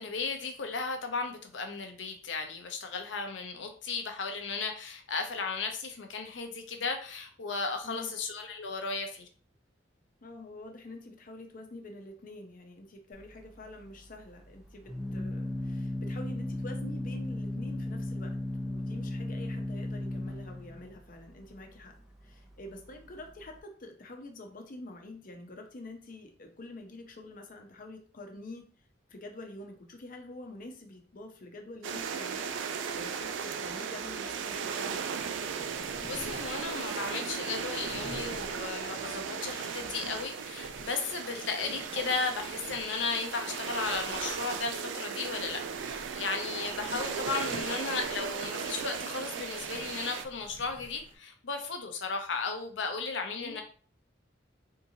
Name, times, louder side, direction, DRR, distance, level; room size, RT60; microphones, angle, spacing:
voice 1, 0.0-9.3 36.0-53.6, left 4 dB, 85° left, 5 dB, 0.7 m, -35 dB
voice 2, 10.2-21.9 22.2-28.7 29.1-32.6 32.9-35.1 46.8-47.0 53.4-53.6, left 2 dB, 50° left, 4 dB, 0.7 m, -46 dB
Organ, 13.1-23.6, left 1 dB, 5° right, 0.5 m, -37 dB
sound 1, 31.8-50.3, right 6 dB, 85° right, 0.4 m, -36 dB
sound 2, 35.2-51.1, left 1 dB, 25° left, 0.9 m, -52 dB
3.6 x 2.8 x 2.7 m, 0.43 s
head